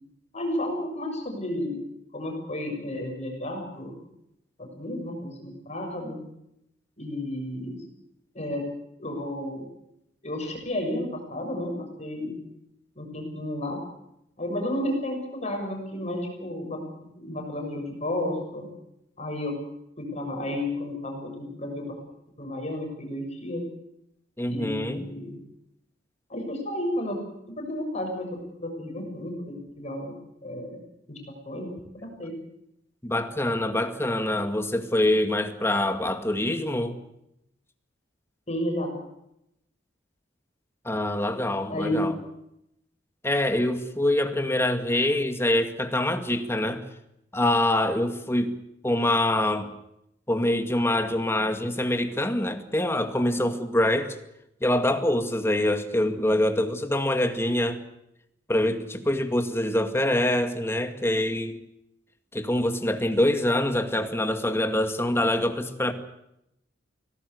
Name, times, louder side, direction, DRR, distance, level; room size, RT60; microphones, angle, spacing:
voice 1, 0.3-1.8 2.1-4.0 4.6-6.2 7.0-7.8 8.3-8.6 9.0-9.7 10.2-12.4 12.9-13.8 14.4-16.8 17.2-18.7 19.2-19.5 20.0-22.0 22.4-23.6 24.5-25.4 26.3-27.2 27.6-28.3 28.6-30.1 30.4-30.8 31.1-31.2 31.5-32.3 38.5-38.9 41.7-42.1, left 1 dB, 40° left, 2 dB, 6.7 m, -32 dB
voice 2, 24.4-25.1 33.0-36.9 40.8-42.2 43.2-46.8 47.3-48.5 48.8-49.7 50.3-54.1 54.6-57.8 58.5-61.6 62.3-65.9, left 1 dB, 15° left, 7 dB, 2.1 m, -25 dB
24.5 x 18.0 x 8.0 m, 0.80 s
head